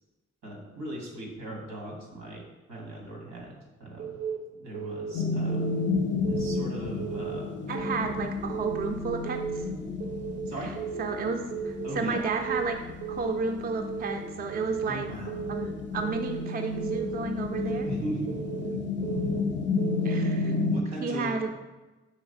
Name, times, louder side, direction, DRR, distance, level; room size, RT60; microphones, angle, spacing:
voice 1, 0.4-2.4 2.7-4.2 4.6-5.8 6.3-7.5 10.5-10.7 11.8-12.2 14.8-15.4 17.8-18.4 20.7-21.3, right 1 dB, 85° right, -2 dB, 1.2 m, -38 dB
Keyboard (musical) / Alarm, 4.0-4.4 4.7-5.1 5.5-5.9 6.2-6.6 7.0-7.4 7.7-8.1 8.5-8.9 9.2-9.6 10.0-10.4 10.7-11.1 11.5-11.9 12.3-12.6 13.0-13.4 13.8-14.1 14.5-14.9 15.3-15.6 16.0-16.4 16.8-17.1 17.5-17.9 18.3-18.6 19.0-19.4 19.8-20.2, right 7 dB, 70° right, 0.7 m, -35 dB
sound 1, 5.1-20.8, left 4 dB, 40° left, 0.5 m, -32 dB
voice 2, 7.7-9.7 11.0-11.4 11.6-12.8 13.1-15.1 15.5-17.9 20.0-20.6 21.0-21.5, right 4 dB, 35° right, 4 dB, 0.4 m, -32 dB
5.0 x 3.0 x 2.6 m, 1.1 s
supercardioid pair, 45°, 29 cm